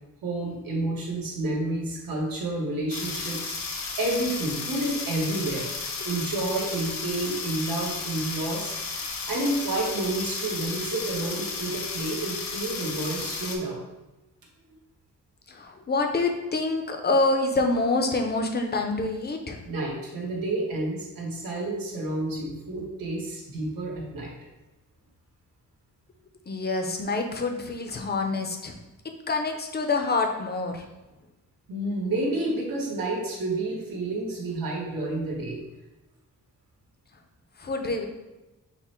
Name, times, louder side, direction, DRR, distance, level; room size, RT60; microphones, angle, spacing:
voice 1, 0.2-5.7 6.0-13.8 19.6-24.3 31.7-35.6, right 2 dB, 80° right, -2 dB, 1.3 m, -30 dB
sound 1, 2.9-13.6, left 4 dB, 85° left, 0.8 m, -33 dB
voice 2, 15.5-19.6 26.5-28.8 29.3-30.8 37.6-38.0, left 3 dB, 30° left, 4 dB, 0.5 m, -26 dB
5.8 x 2.1 x 4.3 m, 1.0 s
wide cardioid pair, 160°, 34 cm